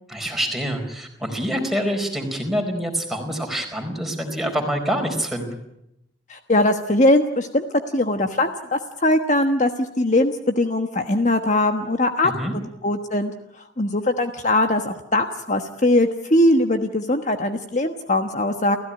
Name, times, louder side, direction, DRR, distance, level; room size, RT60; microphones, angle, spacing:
voice 1, 0.1-5.6 12.2-12.5, equal, ahead, 3 dB, 4.6 m, -26 dB
voice 2, 6.3-7.7 7.9-12.3 12.8-18.8, left 1 dB, 40° left, 6 dB, 1.3 m, -21 dB
29.5 x 15.5 x 9.9 m, 0.83 s
head